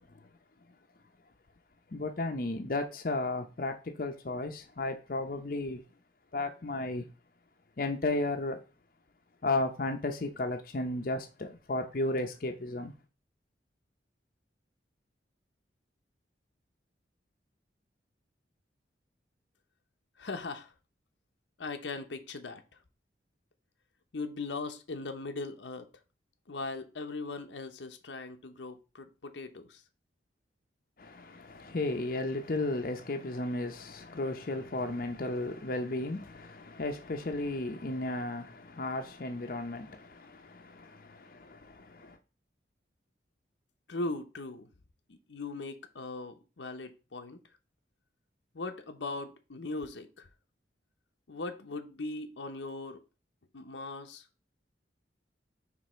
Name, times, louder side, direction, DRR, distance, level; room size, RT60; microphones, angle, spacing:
voice 1, 1.9-5.8 6.3-7.0 7.8-8.6 9.4-12.9 31.0-42.2, left 2 dB, 50° left, 0.7 m, -34 dB
voice 2, 20.2-20.7 21.6-22.6 24.1-25.9 26.5-29.8 43.9-44.7 45.1-47.4 48.5-50.3 51.3-53.0 53.5-54.2, left 3 dB, 85° left, 0.8 m, -39 dB
5.0 x 3.4 x 5.5 m
head